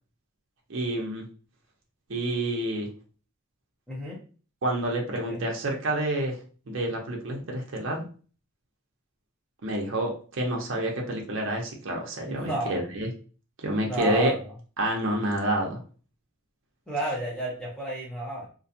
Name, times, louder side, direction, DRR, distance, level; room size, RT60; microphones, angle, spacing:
voice 1, 0.7-1.3 2.1-2.9 4.6-6.4 6.7-8.1 9.6-13.1 13.6-14.3 14.8-15.8, right 1 dB, 60° right, 0 dB, 0.6 m, -28 dB
voice 2, 3.9-4.2 5.3-5.5 12.2-12.8 13.9-14.4 16.9-18.5, right 1 dB, 5° left, -5 dB, 0.6 m, -31 dB
2.4 x 2.3 x 2.7 m, 0.39 s
head